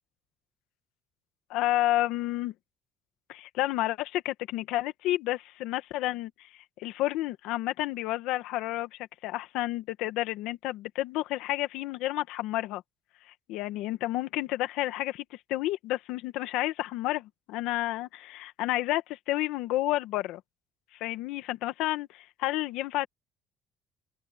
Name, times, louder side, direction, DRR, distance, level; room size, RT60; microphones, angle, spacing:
voice 1, 1.5-2.5 3.3-6.5 6.8-12.8 13.5-15.2 15.5-20.4 21.0-23.1, left 16 dB, 85° left, 1.6 m, -30 dB
open air
cardioid pair, 145°, 0 cm